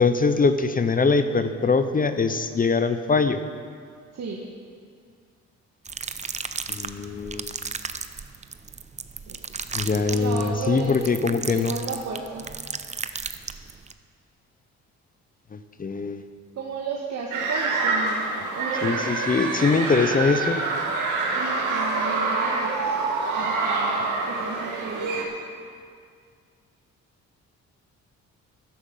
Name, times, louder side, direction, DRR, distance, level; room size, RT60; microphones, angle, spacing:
voice 1, 0.0-3.4 6.7-7.5 9.7-11.7 15.5-16.3 18.8-20.6, left 4 dB, 30° left, 10 dB, 0.7 m, -22 dB
voice 2, 4.1-4.4 9.3-9.4 9.8-11.1 11.5-12.4 16.5-18.2 18.5-20.3 21.3-22.8 23.3-25.4, right 4 dB, 60° right, -2 dB, 1.6 m, -34 dB
sound 1, 5.9-13.9, right 5 dB, 25° right, 0.6 m, -35 dB
sound 2, 17.3-25.2, right 3 dB, 85° right, 2.1 m, -26 dB
14.0 x 11.0 x 5.5 m, 2.1 s
cardioid pair, 90°, 30 cm